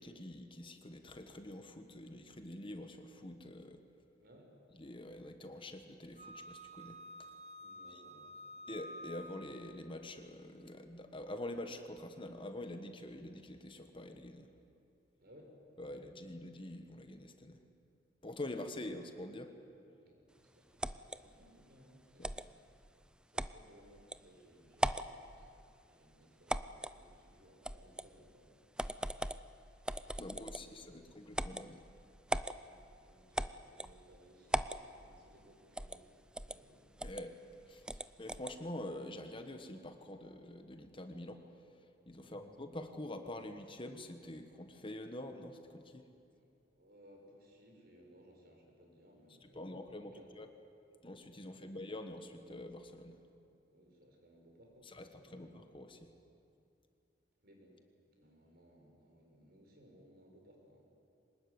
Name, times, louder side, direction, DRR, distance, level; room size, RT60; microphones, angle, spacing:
voice 1, 0.0-3.8 4.7-7.0 7.9-8.0 8.7-14.5 15.8-17.6 18.2-19.6 22.2-22.3 30.2-31.9 37.0-37.4 37.7-41.7 42.1-46.1 49.4-50.5 51.0-53.2 54.9-56.1, left 1 dB, 30° left, 7 dB, 1.5 m, -46 dB
voice 2, 4.2-4.6 7.6-8.7 15.2-15.6 15.8-16.0 20.0-22.4 23.3-25.6 25.9-28.6 30.1-31.1 32.5-36.9 42.1-42.5 46.3-50.3 51.6-51.8 53.3-53.4 53.7-55.6 57.4-57.8 58.1-60.8, equal, 55° right, 1 dB, 5.7 m, -62 dB
Wind instrument woodwind instrument, 6.2-9.8, equal, 40° right, 2.0 m, -50 dB
sound 1, 20.8-21.2 22.2-22.5 23.4-23.6 24.1-24.2 24.7-25.1 26.5-27.0 27.6-28.1 28.8-29.4 29.9-30.7 31.3-31.7 32.3-32.6 33.4-33.9 34.5-34.8 35.8-36.0 36.4-36.6 37.0-37.2 37.9-38.6, right 1 dB, 5° right, 0.5 m, -37 dB
24.0 x 20.0 x 9.6 m, 2.6 s
head